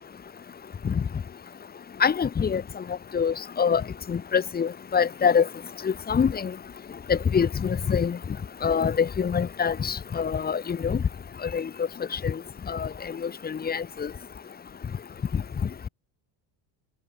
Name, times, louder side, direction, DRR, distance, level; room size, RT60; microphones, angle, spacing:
voice 1, 2.0-2.6 3.1-3.8 4.1-5.5 5.8-6.5 7.1-8.2 8.6-11.0 11.4-11.7 12.2-12.4 12.7-12.9 13.2-14.1, left 6 dB, 20° left, 3.2 m, -25 dB
cardioid pair, 180°, 45 cm